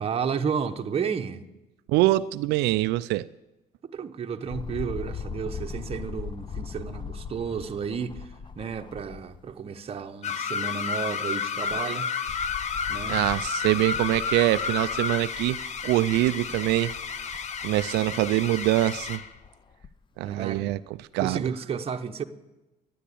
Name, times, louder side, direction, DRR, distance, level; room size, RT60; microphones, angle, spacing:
voice 1, 0.0-1.4 3.8-12.1 12.9-13.2 20.2-20.6 21.2-22.3, right 6 dB, 35° right, 1.0 m, -32 dB
voice 2, 1.9-3.3 13.1-15.6 15.8-16.9 17.6-19.2 20.2-20.8 21.1-21.4, right 17 dB, 85° right, 0.4 m, -24 dB
sound 1, 4.5-9.5 10.0-10.1 11.4-20.0 20.7-20.8, left 6 dB, 30° left, 0.6 m, -41 dB
sound 2, 10.2-19.3, left 6 dB, 45° left, 0.9 m, -31 dB
12.0 x 10.0 x 8.5 m
cardioid pair, 110°, 17 cm